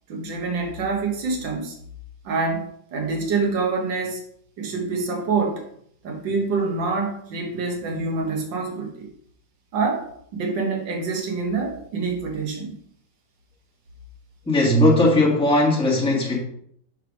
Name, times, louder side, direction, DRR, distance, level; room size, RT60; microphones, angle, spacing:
voice 1, 0.1-1.8 2.3-2.6 2.9-4.2 4.6-5.6 6.0-9.1 9.7-10.1 10.3-12.8, right 4 dB, 75° right, 1.8 m, -26 dB
voice 2, 14.5-16.4, left 1 dB, 5° left, 1.2 m, -18 dB
6.4 x 3.3 x 5.1 m
omnidirectional pair, 2.0 m